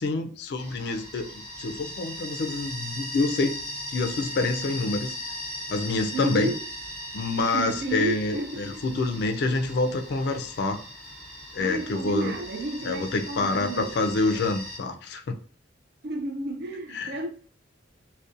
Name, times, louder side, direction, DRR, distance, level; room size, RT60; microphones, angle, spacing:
voice 1, 0.0-3.6 3.9-5.1 5.7-6.5 7.1-10.8 11.5-12.3 12.9-15.4 17.0-17.1, left 3 dB, 60° left, 0.3 m, -27 dB
sound 1, 0.6-14.8, left 1 dB, 5° left, 0.8 m, -38 dB
voice 2, 6.1-6.6 7.5-8.8 11.6-13.9 16.0-17.3, right 2 dB, 55° right, 0.4 m, -31 dB
2.6 x 2.1 x 2.4 m
head